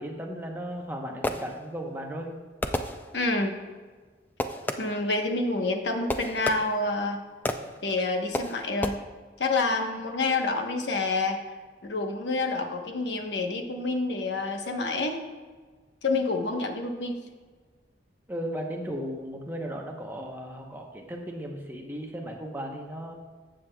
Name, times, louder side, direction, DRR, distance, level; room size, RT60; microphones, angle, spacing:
voice 1, 0.0-2.3 18.3-23.1, equal, 10° right, 1 dB, 0.8 m, -36 dB
Fireworks, 0.7-1.9 2.6-3.5 4.4-5.1 6.1-7.0 7.5-7.9 8.3-8.9, left 1 dB, 10° left, 0.3 m, -32 dB
voice 2, 3.1-3.6 4.8-7.2 7.8-9.0 9.4-11.4 11.8-15.2 16.0-17.2, left 3 dB, 80° left, 4 dB, 1.0 m, -28 dB
14.0 x 7.6 x 2.3 m, 1.4 s
head